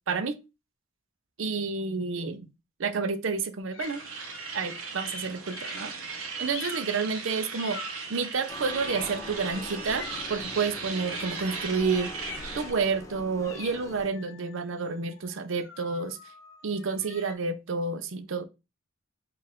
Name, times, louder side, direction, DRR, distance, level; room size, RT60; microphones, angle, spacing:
voice 1, 0.1-0.4 1.4-2.4 2.8-4.0 4.5-5.9 6.4-7.8 8.1-12.1 12.5-16.2 16.6-18.4, right 4 dB, 70° right, 0.5 m, -30 dB
sound 1, 3.7-4.9 5.5-6.0 6.5-7.0 7.6-8.2 8.8-9.3 9.9-10.4 11.0-11.4 12.1-12.7 13.4-17.3, left 6 dB, 70° left, 0.7 m, -45 dB
sound 2, 3.8-12.7, right 5 dB, 85° right, 0.9 m, -38 dB
sound 3, 8.5-14.1, left 1 dB, 15° left, 0.5 m, -42 dB
4.4 x 2.5 x 3.5 m
head